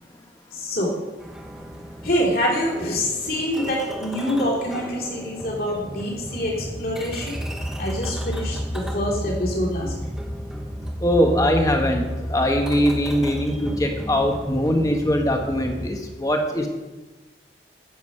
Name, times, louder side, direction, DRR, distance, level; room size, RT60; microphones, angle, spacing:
voice 1, 0.5-0.9 2.0-7.4 7.8-9.9, equal, 55° left, -4 dB, 3.1 m, -25 dB
sound 1, 1.2-15.9, equal, 5° right, 1.0 m, -32 dB
voice 2, 11.0-16.7, equal, 20° left, 3 dB, 1.2 m, -21 dB
10.0 x 8.2 x 5.5 m, 1.1 s
head